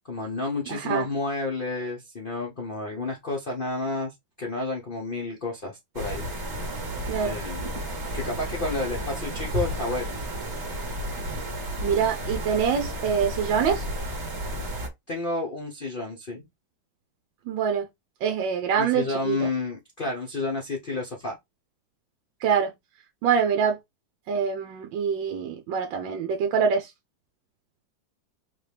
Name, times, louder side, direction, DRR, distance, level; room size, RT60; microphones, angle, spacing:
voice 1, 0.0-6.2 7.2-7.7 8.1-10.1 15.1-16.5 18.8-21.4, left 3 dB, 90° left, 0.4 m, -30 dB
voice 2, 0.7-1.1 7.1-7.3 11.8-13.9 17.5-17.8 18.2-19.5 22.4-22.7 23.2-23.8 24.3-26.9, right 7 dB, 75° right, 1.3 m, -25 dB
sound 1, 5.9-14.9, equal, 35° right, 1.7 m, -32 dB
3.9 x 3.0 x 3.3 m
omnidirectional pair, 2.2 m